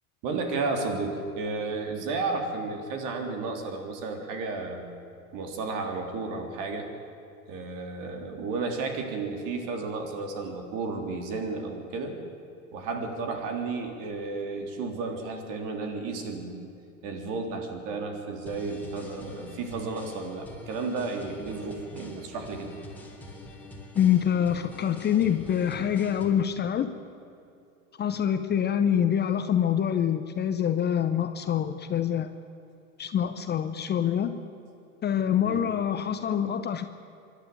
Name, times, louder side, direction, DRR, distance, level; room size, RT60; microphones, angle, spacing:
voice 1, 0.2-4.9 5.3-6.9 7.5-12.2 12.7-16.7 17.0-22.7 35.4-35.6, right 3 dB, 45° right, 4 dB, 3.5 m, -33 dB
sound 1, 18.5-26.4, left 1 dB, 5° left, 3.6 m, -45 dB
voice 2, 23.9-26.9 28.0-32.3 33.0-34.3 35.0-36.9, left 9 dB, 25° left, 10 dB, 0.9 m, -25 dB
25.5 x 12.0 x 9.2 m, 2.6 s
hypercardioid pair, 90°, 43 cm